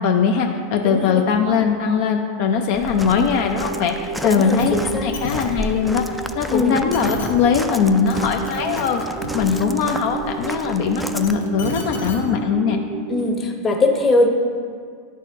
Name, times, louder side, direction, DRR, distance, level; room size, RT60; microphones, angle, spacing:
voice 1, 0.0-9.0 9.3-12.8, left 6 dB, 60° left, 3 dB, 0.5 m, -20 dB
voice 2, 0.8-1.2 4.2-5.1 6.5-6.8 13.1-14.3, left 2 dB, 25° left, 2 dB, 0.9 m, -20 dB
Walk footsteps, 2.7-11.3, right 1 dB, ahead, 0.3 m, -33 dB
sound 1, 3.3-13.3, right 5 dB, 65° right, 0.5 m, -33 dB
sound 2, 4.6-4.7 5.0-5.5 6.6-6.7 6.9-7.3 7.9-8.2 8.5-9.6 11.0-12.2 13.2-13.3, left 3 dB, 90° left, 1.1 m, -31 dB
9.8 x 4.2 x 3.6 m, 2.1 s
hypercardioid pair, 110°, 0 cm